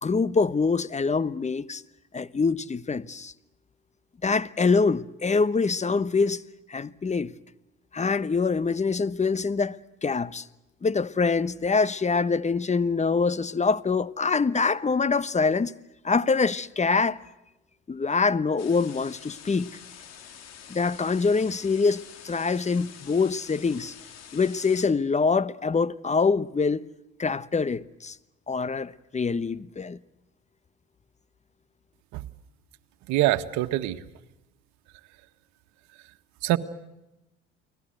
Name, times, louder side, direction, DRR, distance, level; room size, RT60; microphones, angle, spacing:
voice 1, 0.0-1.8 2.1-3.3 4.2-6.4 6.7-7.3 7.9-10.5 10.8-15.7 16.0-17.2 17.9-19.7 20.7-23.9 24.3-26.8 27.2-28.2 28.5-30.0, left 4 dB, 25° left, 1.2 m, -25 dB
sound 1, 18.6-24.9, left 8 dB, 60° left, 4.2 m, -47 dB
voice 2, 33.1-34.0 36.4-36.6, right 15 dB, 70° right, 1.7 m, -24 dB
30.0 x 21.0 x 7.9 m
hypercardioid pair, 65°, 30 cm